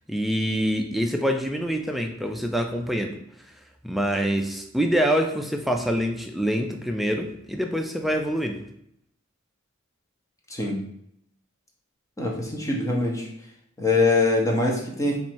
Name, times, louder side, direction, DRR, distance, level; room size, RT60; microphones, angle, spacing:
voice 1, 0.1-3.2 3.8-8.6, equal, ahead, 3 dB, 0.3 m, -25 dB
voice 2, 12.2-13.3 13.8-15.2, left 3 dB, 15° left, -1 dB, 0.8 m, -23 dB
4.2 x 2.6 x 4.4 m, 0.73 s
head